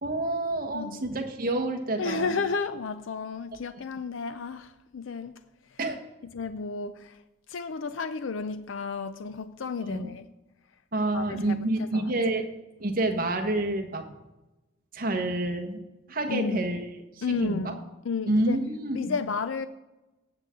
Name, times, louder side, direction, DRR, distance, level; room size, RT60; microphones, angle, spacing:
voice 1, 0.0-2.4 5.8-6.0 9.9-10.1 10.9-12.4 12.8-14.1 14.9-15.8 16.1-16.8 17.3-17.7 18.3-19.1, right 2 dB, 45° right, 1.3 m, -28 dB
voice 2, 2.0-5.4 5.7-5.8 6.2-7.2 7.5-10.2 11.1-12.1 16.3-16.6 17.2-17.8 18.0-18.6 18.9-19.7, left 5 dB, 85° left, 0.5 m, -32 dB
17.0 x 7.1 x 3.7 m
head